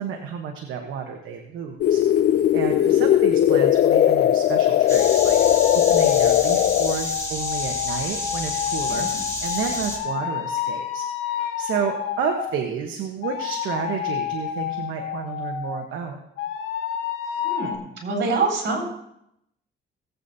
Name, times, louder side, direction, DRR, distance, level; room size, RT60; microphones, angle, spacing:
voice 1, 0.0-2.0 2.5-16.2, right 7 dB, 80° right, 3 dB, 1.1 m, -31 dB
sound 1, 1.8-7.0, left 11 dB, 55° left, 0.4 m, -18 dB
sound 2, 4.9-10.0, left 2 dB, 15° left, 3.0 m, -30 dB
sound 3, 5.0-12.6 13.2-15.9 16.4-17.8, left 9 dB, 90° left, 1.1 m, -29 dB
voice 2, 8.9-9.2 17.4-18.9, right 3 dB, 65° right, 0 dB, 3.9 m, -26 dB
18.5 x 8.2 x 2.7 m, 0.79 s
cardioid pair, 90°, 20 cm